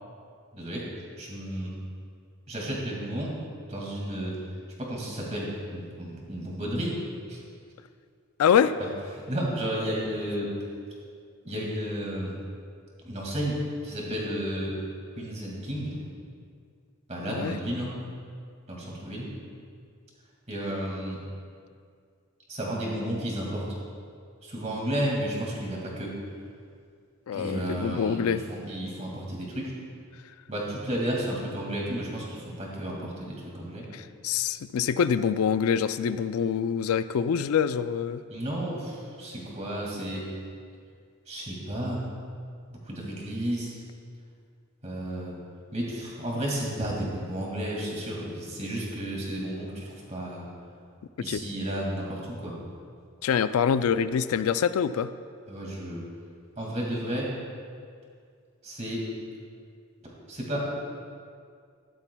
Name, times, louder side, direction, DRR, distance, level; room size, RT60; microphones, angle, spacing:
voice 1, 0.5-0.9 1.2-1.7 2.5-3.3 3.7-4.4 4.8-7.0 7.3-7.4 9.3-10.5 11.4-12.3 13.0-13.6 13.8-14.8 15.1-16.0 17.1-17.9 18.7-19.3 20.5-21.2 22.5-23.7 24.4-26.1 27.3-29.7 30.5-33.9 38.3-40.3 41.3-42.0 42.7-43.8 44.8-45.3 45.7-50.5 51.2-52.5 55.5-56.1 56.6-57.3 58.6-59.1 60.3-60.7, right 1 dB, 30° right, -3 dB, 2.1 m, -32 dB
voice 2, 8.4-8.7 17.3-17.6 27.3-28.4 33.9-38.2 51.3-51.4 53.2-55.1, left 7 dB, 85° left, 13 dB, 0.3 m, -25 dB
14.0 x 11.5 x 2.3 m, 2.2 s
head